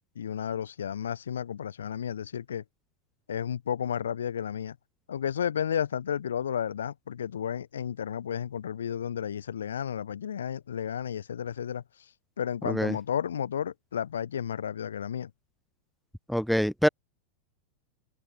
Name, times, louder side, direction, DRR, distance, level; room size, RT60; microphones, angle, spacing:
voice 1, 0.2-2.6 3.3-4.8 5.1-11.8 12.4-15.3, left 8 dB, 75° left, 4.3 m, -32 dB
voice 2, 12.7-13.0 16.3-16.9, equal, ahead, 1.0 m, -25 dB
open air
hypercardioid pair, 95°, 0 cm